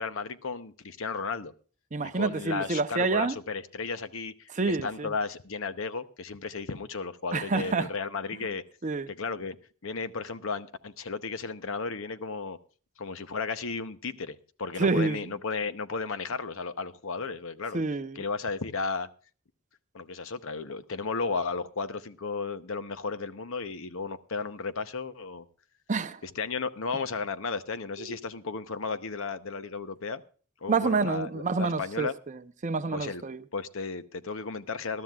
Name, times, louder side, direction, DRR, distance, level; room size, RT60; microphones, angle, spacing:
voice 1, 0.0-1.5 2.0-8.6 9.1-9.6 9.8-12.6 13.0-17.8 18.1-19.1 19.9-25.4 26.2-30.2 30.6-32.1 32.9-33.2 33.5-35.0, left 4 dB, 65° left, 0.8 m, -34 dB
voice 2, 1.9-3.4 4.5-5.1 7.3-7.9 8.8-9.1 14.8-15.3 17.7-18.2 25.9-26.2 28.0-28.2 30.7-33.4, right 4 dB, 35° right, 0.6 m, -28 dB
21.0 x 12.5 x 2.4 m
head